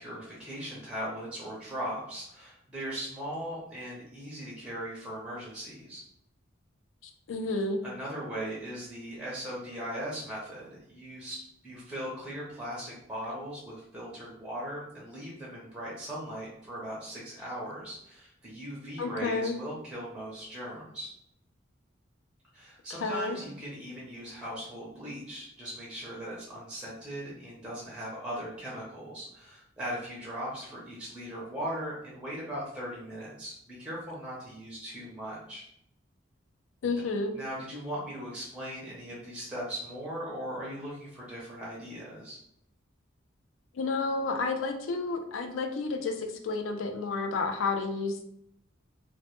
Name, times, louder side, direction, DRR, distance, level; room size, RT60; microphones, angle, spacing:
voice 1, 0.0-6.0 7.8-21.1 22.5-35.7 37.3-42.4, equal, 5° right, -5 dB, 0.5 m, -39 dB
voice 2, 7.0-7.8 19.0-19.5 23.0-23.4 36.8-37.3 43.7-48.2, left 3 dB, 75° left, 5 dB, 0.3 m, -31 dB
2.1 x 2.0 x 2.9 m, 0.76 s
head